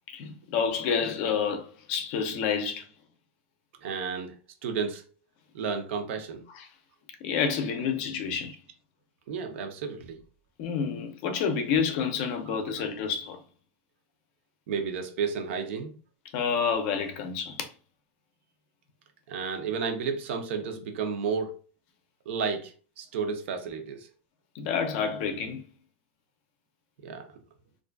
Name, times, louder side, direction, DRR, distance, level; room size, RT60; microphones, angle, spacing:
voice 1, 0.1-2.9 6.6-6.7 7.2-8.6 10.6-13.4 16.3-17.7 24.5-25.6, left 6 dB, 50° left, 0.5 m, -29 dB
voice 2, 3.8-4.3 4.6-5.0 5.5-6.4 9.3-10.2 14.7-15.9 19.3-21.5 22.3-24.1 27.0-27.3, right 5 dB, 70° right, 0.5 m, -32 dB
2.4 x 2.3 x 2.3 m
supercardioid pair, 155°, 7 cm